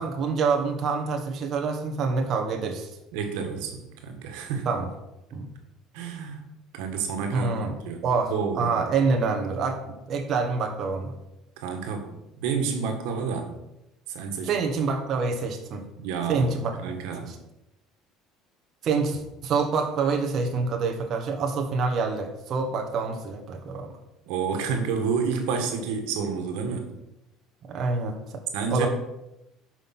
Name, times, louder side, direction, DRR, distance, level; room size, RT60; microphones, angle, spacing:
voice 1, 0.0-2.9 4.6-4.9 5.3-5.5 7.3-7.7 8.0-8.3 8.6-11.1 14.4-15.9 16.3-16.7 17.3-17.4 18.8-24.0 27.6-28.2 28.7-28.9, right 4 dB, 50° right, 3 dB, 1.3 m, -26 dB
voice 2, 3.1-4.7 5.9-6.4 6.7-8.7 11.6-13.5 14.1-14.5 16.0-16.5 16.8-17.3 24.3-26.9 28.5-28.9, right 5 dB, 85° right, 5 dB, 1.8 m, -30 dB
9.7 x 6.0 x 6.0 m, 0.92 s
cardioid pair, 115°, 0 cm